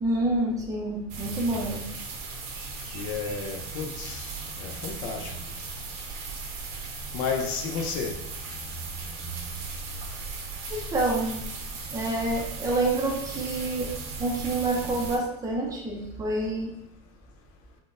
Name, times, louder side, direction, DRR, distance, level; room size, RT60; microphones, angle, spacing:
voice 1, 0.0-1.8 10.7-11.4 11.9-13.9 14.2-16.7, right 2 dB, 20° right, -1 dB, 0.5 m, -28 dB
sound 1, 1.1-15.2, right 3 dB, 60° right, 0.7 m, -37 dB
voice 2, 2.9-4.3 4.6-5.3 7.1-8.2, left 5 dB, 65° left, 2 dB, 0.6 m, -32 dB
3.7 x 2.1 x 2.5 m, 0.81 s
supercardioid pair, 145°, 19 cm